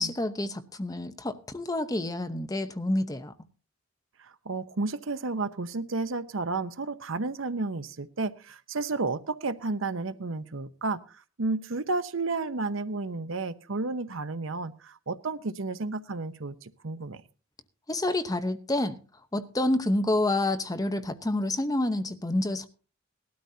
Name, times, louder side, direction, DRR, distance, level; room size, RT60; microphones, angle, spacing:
voice 1, 0.0-3.3 17.9-19.0 19.3-22.7, left 1 dB, 15° left, 0.8 m, -28 dB
voice 2, 4.2-17.2, right 3 dB, 70° right, 0.8 m, -32 dB
19.5 x 12.5 x 2.8 m
head